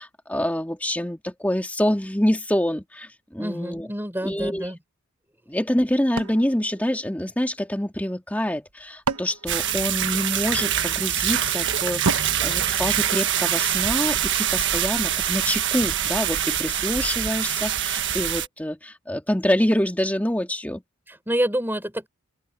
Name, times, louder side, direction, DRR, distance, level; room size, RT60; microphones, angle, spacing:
voice 1, 0.0-3.9 4.2-4.7 5.5-20.8, left 1 dB, 5° left, 1.9 m, -26 dB
voice 2, 3.4-4.8 21.1-22.1, right 1 dB, 10° right, 4.7 m, -27 dB
sound 1, 6.2-7.7 8.6-10.5 12.0-13.6, right 3 dB, 80° right, 1.3 m, -33 dB
sound 2, 9.5-18.5, right 10 dB, 55° right, 1.5 m, -24 dB
open air
head